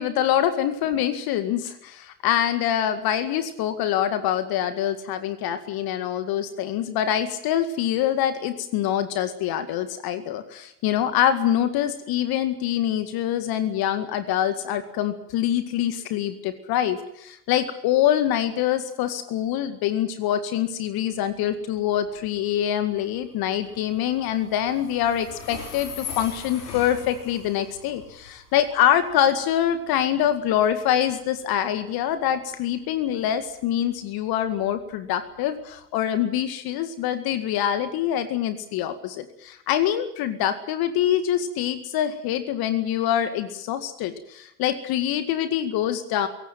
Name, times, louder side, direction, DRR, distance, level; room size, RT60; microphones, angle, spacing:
voice 1, 0.0-46.3, left 10 dB, 50° left, 10 dB, 2.1 m, -25 dB
Train, 21.1-35.8, left 6 dB, 75° left, 5.8 m, -43 dB
23.0 x 18.0 x 9.1 m, 0.78 s
figure-of-eight pair, 65°, 47 cm